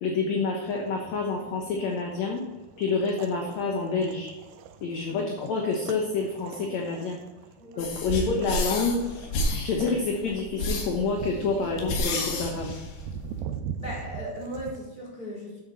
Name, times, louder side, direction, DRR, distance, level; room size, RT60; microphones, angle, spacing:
voice 1, 0.0-2.4 2.8-4.3 4.8-7.2 7.8-9.0 9.5-12.7, left 4 dB, 65° left, 1 dB, 1.9 m, -28 dB
sound 1, 0.6-14.8, right 7 dB, 80° right, 2.4 m, -42 dB
voice 2, 7.6-7.9 13.8-15.6, equal, 15° left, -6 dB, 3.6 m, -37 dB
sound 2, 7.8-13.4, left 2 dB, 80° left, 3.5 m, -31 dB
10.5 x 8.4 x 4.1 m, 1.1 s
omnidirectional pair, 4.4 m